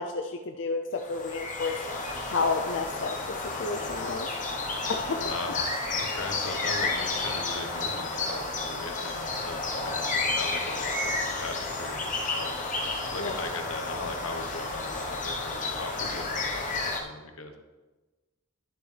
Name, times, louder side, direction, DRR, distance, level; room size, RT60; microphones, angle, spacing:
voice 1, 0.0-1.9 2.3-4.3 4.9-5.2 13.2-13.4, left 4 dB, 60° left, 4 dB, 0.5 m, -31 dB
sound 1, 1.0-17.0, left 3 dB, 35° left, 1.1 m, -31 dB
voice 2, 5.1-12.5 13.1-17.6, left 3 dB, 90° left, 4 dB, 1.2 m, -39 dB
11.5 x 7.0 x 3.4 m, 1.2 s
head